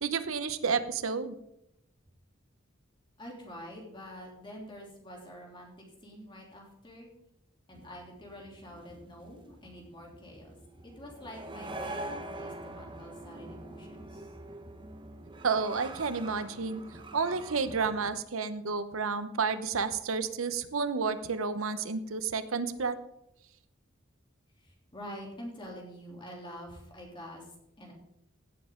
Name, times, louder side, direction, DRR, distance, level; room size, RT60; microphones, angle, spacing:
voice 1, 0.0-1.4 15.4-16.8 17.1-23.0, right 5 dB, 85° right, 12 dB, 0.9 m, -31 dB
voice 2, 3.2-7.1 7.7-10.5 10.8-14.3 24.6-27.5 27.8-27.9, equal, 25° left, -1 dB, 3.1 m, -46 dB
sound 1, 7.7-18.1, right 1 dB, 25° right, 1.0 m, -44 dB
17.0 x 7.3 x 3.8 m, 0.80 s
head